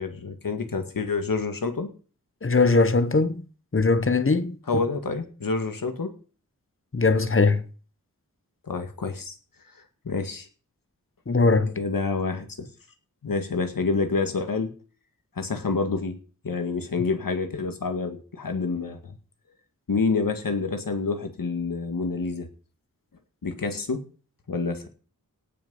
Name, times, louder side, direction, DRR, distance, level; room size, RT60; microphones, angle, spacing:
voice 1, 0.0-1.9 4.7-6.1 8.6-9.3 10.0-10.5 11.8-12.7 13.2-14.7 15.4-16.2 16.4-19.2 19.9-22.5 23.4-24.0 24.5-24.9, left 4 dB, 80° left, 2.0 m, -28 dB
voice 2, 2.4-3.4 3.7-4.8 6.9-7.6 11.3-11.8, left 3 dB, 40° left, 1.2 m, -21 dB
17.5 x 6.3 x 5.5 m
wide cardioid pair, 80°, 33 cm